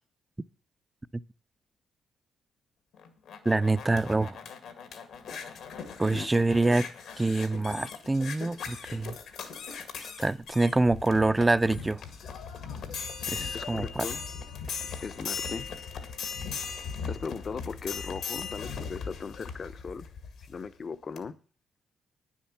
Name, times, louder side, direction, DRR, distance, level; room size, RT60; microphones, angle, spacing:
sound 1, 2.9-20.6 21.2-21.3, left 6 dB, 80° left, 1.9 m, -39 dB
voice 1, 3.5-4.4 6.0-6.9 7.2-9.2 10.0-12.0 13.3-14.1, right 2 dB, 15° right, 0.4 m, -26 dB
voice 2, 13.5-14.2 15.0-15.7 17.1-20.1 20.4-21.4, left 5 dB, 45° left, 0.7 m, -38 dB
10.0 x 7.3 x 7.2 m
cardioid pair, 75°, 0 cm